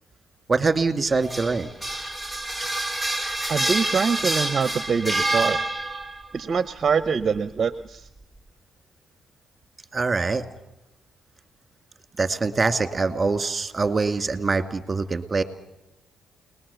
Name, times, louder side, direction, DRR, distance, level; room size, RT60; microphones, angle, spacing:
voice 1, 0.5-1.7 9.9-10.4 12.2-15.4, right 4 dB, 25° right, 8 dB, 2.2 m, -24 dB
sound 1, 1.1-6.2, right 2 dB, 5° left, 2.7 m, -27 dB
voice 2, 3.5-5.6 6.3-8.1, right 6 dB, 45° right, 12 dB, 0.8 m, -24 dB
30.0 x 20.0 x 7.0 m, 0.92 s
cardioid pair, 90°, 0 cm